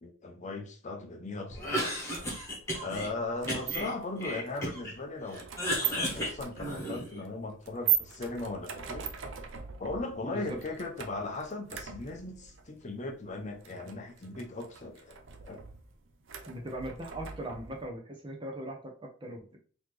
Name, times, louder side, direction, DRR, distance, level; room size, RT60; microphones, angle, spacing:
voice 1, 0.0-1.9 2.8-9.1 9.8-15.2 15.4-15.6, left 2 dB, 35° left, 0.7 m, -38 dB
Cough, 1.5-3.1 3.5-5.0 5.3-7.2, equal, 15° left, 1.4 m, -34 dB
sound 1, 2.1-17.9, right 9 dB, 60° right, 0.6 m, -39 dB
voice 2, 10.2-10.6 16.5-19.6, right 1 dB, 25° right, 0.8 m, -40 dB
4.0 x 3.0 x 3.2 m
head